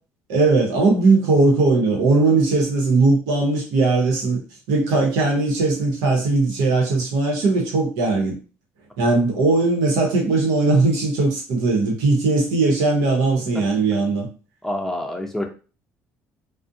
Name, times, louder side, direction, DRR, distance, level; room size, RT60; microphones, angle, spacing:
voice 1, 0.3-4.4 4.7-8.3 9.0-14.3, right 3 dB, 80° right, 0.9 m, -19 dB
voice 2, 14.6-15.4, left 1 dB, 5° left, 0.6 m, -27 dB
2.5 x 2.1 x 2.6 m
supercardioid pair, 75°, 7 cm